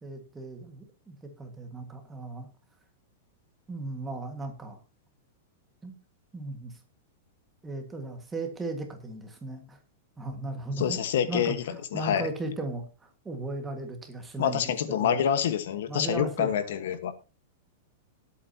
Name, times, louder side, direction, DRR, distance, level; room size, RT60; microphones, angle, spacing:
voice 1, 0.0-2.5 3.7-4.8 5.8-5.9 6.3-6.8 7.6-9.8 10.2-11.0 11.3-15.2 15.9-16.6, right 2 dB, 10° right, 1.7 m, -37 dB
voice 2, 10.8-11.6 11.9-12.3 14.4-17.1, left 9 dB, 65° left, 1.3 m, -27 dB
19.0 x 8.5 x 2.9 m
supercardioid pair, 175°, 0 cm